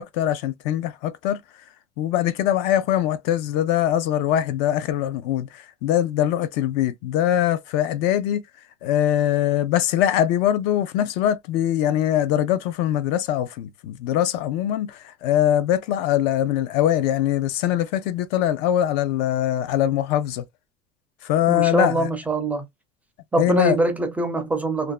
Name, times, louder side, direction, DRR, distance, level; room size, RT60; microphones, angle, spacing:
voice 1, 0.0-1.4 2.0-5.5 5.8-8.4 8.8-20.4 21.2-22.1 23.4-23.8, left 11 dB, 65° left, 0.4 m, -22 dB
voice 2, 21.5-22.7 23.3-24.9, right 2 dB, 10° right, 0.4 m, -23 dB
2.5 x 2.2 x 2.3 m
cardioid pair, 160°, 18 cm